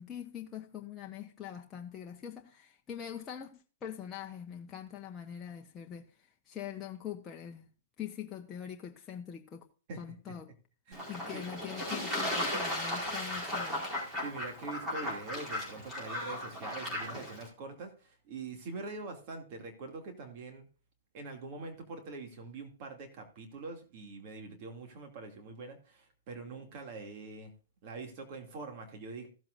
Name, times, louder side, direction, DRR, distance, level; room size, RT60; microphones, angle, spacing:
voice 1, 0.0-7.7 8.0-9.6 10.0-10.5 11.1-13.9, left 9 dB, 20° left, 0.9 m, -43 dB
voice 2, 9.9-10.3 10.9-11.4 14.2-20.7 21.1-27.5 27.8-29.3, right 3 dB, 45° right, 2.4 m, -44 dB
Fowl / Bird / Water, 10.9-17.5, left 1 dB, 15° right, 4.6 m, -36 dB
15.5 x 7.7 x 2.5 m
hypercardioid pair, 135°, 0 cm